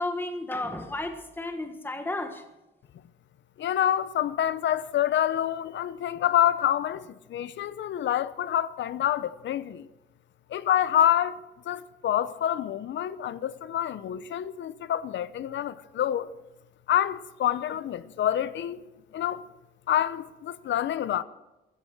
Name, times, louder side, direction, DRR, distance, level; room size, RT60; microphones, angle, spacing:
voice 1, 0.0-2.4, left 2 dB, 10° left, 1.5 m, -32 dB
voice 2, 3.6-9.9 10.5-11.4 11.7-16.3 16.9-18.8 19.1-19.4 19.9-21.2, left 11 dB, 70° left, 0.9 m, -27 dB
15.0 x 15.0 x 6.2 m
cardioid pair, 90°, 20 cm